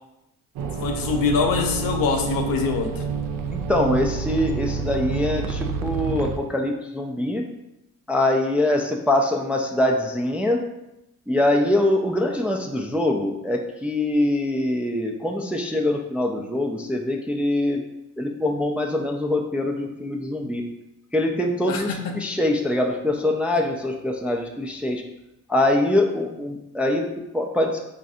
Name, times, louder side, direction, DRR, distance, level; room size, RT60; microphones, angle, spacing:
sound 1, 0.6-6.4, right 5 dB, 60° right, 0.5 m, -28 dB
voice 1, 0.8-3.0 21.7-22.2, left 5 dB, 60° left, 4 dB, 0.6 m, -24 dB
voice 2, 3.5-7.4 8.1-10.7 11.3-17.8 18.2-20.6 21.1-25.0 25.5-27.8, left 1 dB, 5° right, 1 dB, 0.3 m, -23 dB
3.9 x 2.4 x 2.6 m, 0.90 s
hypercardioid pair, 45°, 39 cm